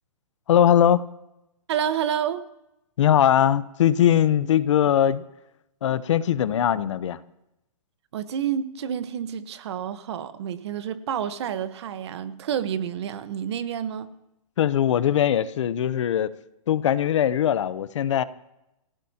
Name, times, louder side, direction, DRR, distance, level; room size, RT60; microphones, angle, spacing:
voice 1, 0.5-1.0 3.0-5.2 5.8-7.2 14.6-16.3 16.7-18.2, left 10 dB, 55° left, 0.8 m, -20 dB
voice 2, 1.7-2.4 8.1-14.1, right 9 dB, 50° right, 1.2 m, -29 dB
28.0 x 16.0 x 2.9 m
hypercardioid pair, 160°, 18 cm